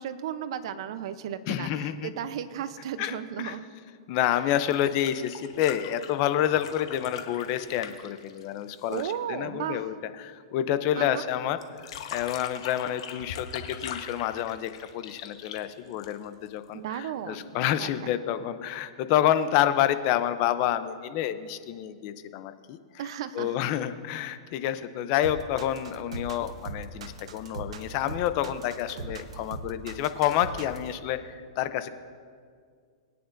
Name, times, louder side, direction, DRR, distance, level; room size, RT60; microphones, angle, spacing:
voice 1, 0.0-3.7 8.9-9.8 11.0-11.3 16.7-18.1 23.0-23.6, right 9 dB, 60° right, 12 dB, 0.7 m, -35 dB
voice 2, 1.5-2.1 3.0-3.2 3.4-3.5 4.1-22.8 23.3-31.9, left 11 dB, 40° left, 12 dB, 0.6 m, -28 dB
sound 1, 4.5-9.2 11.6-16.5 17.9-18.0, left 8 dB, 60° left, 1.1 m, -41 dB
sound 2, 25.2-30.9, right 4 dB, 85° right, 1.0 m, -39 dB
22.0 x 9.5 x 2.6 m, 2.1 s
hypercardioid pair, 155°, 3 cm